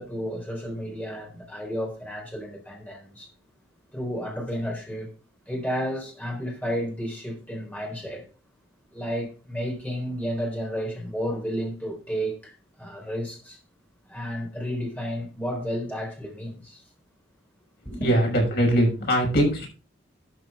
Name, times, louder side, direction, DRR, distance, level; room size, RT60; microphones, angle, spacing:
voice 1, 0.0-3.3 3.9-5.1 5.5-8.3 8.9-12.5 12.8-13.6 14.1-16.8 17.9-18.1, equal, 10° left, 3.8 m, -32 dB
voice 2, 18.0-19.7, right 1 dB, 50° left, 5.7 m, -21 dB
13.0 x 7.6 x 3.6 m
head